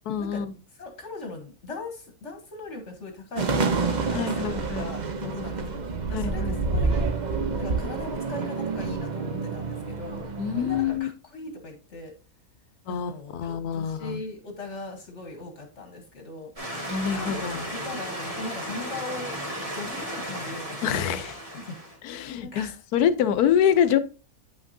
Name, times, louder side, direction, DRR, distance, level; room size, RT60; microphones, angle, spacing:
voice 1, 0.1-0.5 4.1-4.9 6.1-6.8 10.4-11.1 12.9-14.2 16.9-17.6 20.8-21.3 22.0-24.0, left 8 dB, 90° left, 12 dB, 1.2 m, -26 dB
voice 2, 0.7-5.8 6.1-7.1 7.6-10.3 10.5-12.1 12.9-16.5 17.1-19.3 19.7-21.2 21.6-21.8 22.4-22.8, left 3 dB, 55° left, 4 dB, 1.4 m, -39 dB
sound 1, 3.3-11.0, right 4 dB, 40° right, 0.7 m, -28 dB
sound 2, 16.6-22.0, equal, 25° right, 2.1 m, -35 dB
8.7 x 5.9 x 2.6 m, 0.35 s
omnidirectional pair, 1.6 m